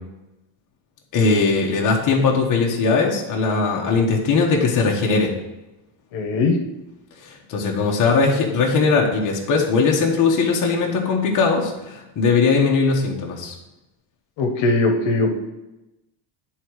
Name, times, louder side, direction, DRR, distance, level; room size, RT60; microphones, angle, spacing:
voice 1, 1.1-5.3 7.5-13.5, left 4 dB, 40° left, -1 dB, 1.2 m, -19 dB
voice 2, 6.1-6.6 14.4-15.4, left 3 dB, 65° left, 2 dB, 1.3 m, -20 dB
9.9 x 3.7 x 4.7 m, 0.99 s
cardioid pair, 155°, 49 cm